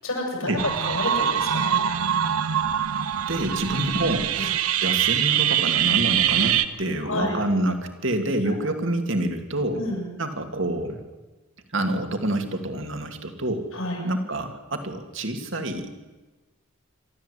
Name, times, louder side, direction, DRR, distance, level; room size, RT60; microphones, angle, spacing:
voice 1, 0.0-1.8 4.3-4.5 7.0-7.3 8.5-8.6 9.8-10.0 13.7-14.0, left 1 dB, 75° left, 1 dB, 7.6 m, -29 dB
sound 1, 0.6-6.7, right 10 dB, 90° right, 1.0 m, -23 dB
voice 2, 3.3-4.5 4.8-9.8 10.2-11.0 11.7-13.8 14.0-15.9, right 1 dB, 60° right, 5 dB, 2.4 m, -27 dB
26.5 x 13.0 x 8.3 m, 1.2 s
head